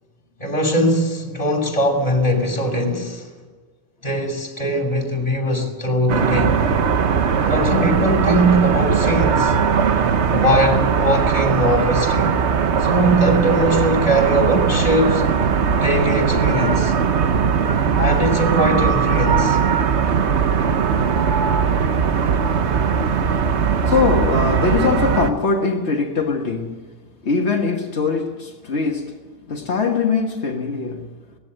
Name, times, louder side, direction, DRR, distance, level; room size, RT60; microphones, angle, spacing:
voice 1, 0.4-3.3 4.0-6.6 7.4-9.5 10.3-12.4 12.8-15.3 15.8-16.9 17.9-19.6, right 1 dB, 35° left, 3.1 m, -20 dB
sound 1, 6.1-25.3, right 6 dB, 85° right, 1.3 m, -19 dB
sound 2, 15.5-24.9, right 6 dB, 55° right, 1.3 m, -25 dB
voice 2, 23.9-26.9 27.2-29.2 29.5-31.1, left 4 dB, 80° left, 1.7 m, -21 dB
19.0 x 15.5 x 9.7 m
omnidirectional pair, 1.1 m